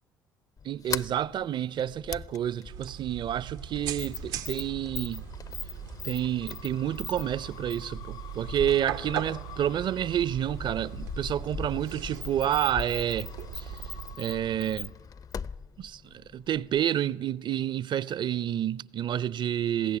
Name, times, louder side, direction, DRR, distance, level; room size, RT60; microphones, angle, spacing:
Sliding door, 0.6-16.9, left 6 dB, 35° left, 0.6 m, -41 dB
voice 1, 0.6-5.3 6.0-13.6 14.2-14.9 15.8-20.0, right 10 dB, 50° right, 0.6 m, -29 dB
sound 1, 2.7-14.2, right 11 dB, 80° right, 0.9 m, -40 dB
sound 2, 6.4-15.3, left 13 dB, 70° left, 1.6 m, -51 dB
21.0 x 16.0 x 9.6 m
hypercardioid pair, 55°, 10 cm